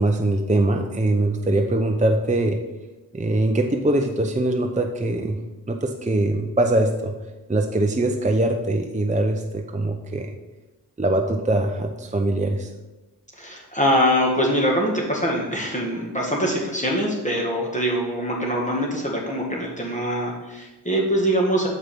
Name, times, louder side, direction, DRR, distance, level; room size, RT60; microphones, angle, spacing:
voice 1, 0.0-2.6 3.1-5.4 5.7-7.1 7.5-10.3 11.0-12.7, right 1 dB, 20° right, 3 dB, 0.7 m, -22 dB
voice 2, 13.4-21.7, equal, 20° left, -2 dB, 1.9 m, -23 dB
6.7 x 4.7 x 6.0 m, 1.1 s
cardioid pair, 45°, 40 cm